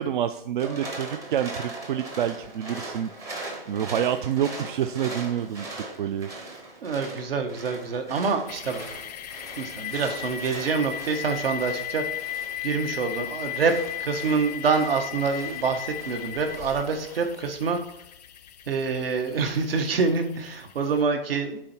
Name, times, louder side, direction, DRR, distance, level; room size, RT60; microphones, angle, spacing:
voice 1, 0.0-3.1 3.7-5.7 6.0-6.3, right 9 dB, 55° right, 9 dB, 0.4 m, -27 dB
sound 1, 0.6-17.3, right 2 dB, 10° right, 0.7 m, -40 dB
voice 2, 6.8-8.8 9.5-12.0 12.6-13.7 14.0-17.8 18.7-21.6, right 5 dB, 75° right, 6 dB, 1.4 m, -26 dB
sound 2, 8.5-21.0, left 10 dB, 45° left, 0.5 m, -36 dB
7.3 x 4.6 x 4.3 m, 0.78 s
hypercardioid pair, 160°, 30 cm